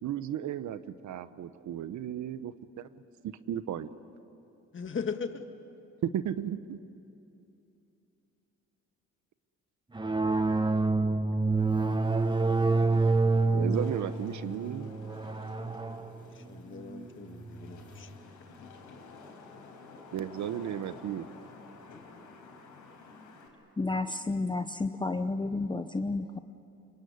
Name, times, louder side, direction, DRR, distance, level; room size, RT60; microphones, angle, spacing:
voice 1, 0.0-3.9 6.0-6.8 13.5-14.9 20.1-21.3, right 10 dB, 70° right, 1.0 m, -35 dB
voice 2, 4.7-5.5 16.3-18.1, left 5 dB, 40° left, 1.8 m, -38 dB
sound 1, 9.9-18.1, right 3 dB, 15° right, 1.4 m, -28 dB
Wind / Rain, 12.0-23.5, left 4 dB, 80° left, 4.9 m, -52 dB
voice 3, 23.8-26.4, left 3 dB, 15° left, 0.8 m, -31 dB
26.0 x 23.0 x 9.6 m
cardioid pair, 90°, 30 cm